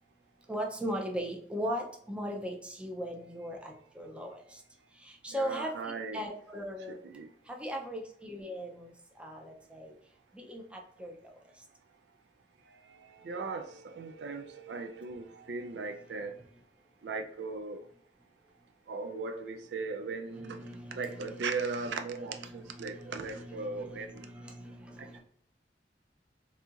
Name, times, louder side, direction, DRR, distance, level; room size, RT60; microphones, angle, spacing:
voice 1, 0.5-4.6 5.0-7.0 7.5-8.9 9.2-9.9 10.3-11.2 20.3-22.0 22.3-25.2, equal, 5° right, 1 dB, 0.5 m, -39 dB
voice 2, 5.3-6.3 6.9-7.3 12.8-16.3 17.0-17.8 18.9-24.3 25.0-25.2, right 4 dB, 75° right, 7 dB, 0.4 m, -38 dB
4.1 x 2.7 x 2.4 m, 0.63 s
head